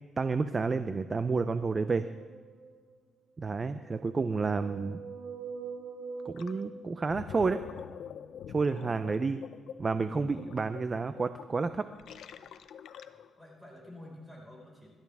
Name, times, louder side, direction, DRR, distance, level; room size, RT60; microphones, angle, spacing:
voice 1, 0.2-2.1 3.4-5.0 6.2-7.6 8.5-9.4 9.8-11.9, right 4 dB, 35° right, 11 dB, 0.6 m, -30 dB
sound 1, 1.7-2.9 3.8-7.7, right 5 dB, 70° right, 5.0 m, -45 dB
Gurgling, 6.4-6.6 6.9-13.4, left 8 dB, 70° left, 0.7 m, -46 dB
voice 2, 13.0-14.9, left 1 dB, 5° right, -3 dB, 5.2 m, -50 dB
27.0 x 13.0 x 3.6 m, 1.5 s
cardioid pair, 90°, 0 cm